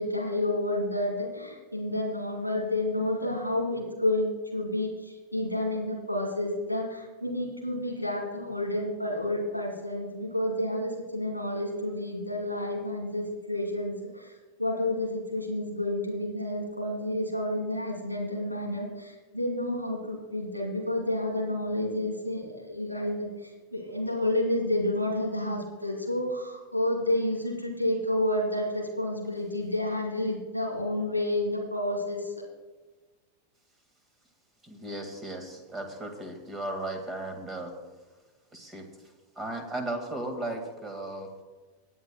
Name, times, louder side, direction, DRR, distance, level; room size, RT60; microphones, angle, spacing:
voice 1, 0.0-14.3 14.6-32.3, left 1 dB, 90° right, -1 dB, 2.8 m, -30 dB
voice 2, 34.6-37.7 38.5-38.9 39.4-41.3, right 1 dB, 20° right, 6 dB, 1.9 m, -36 dB
26.0 x 9.4 x 2.2 m, 1.3 s
figure-of-eight pair, 90°, 0 cm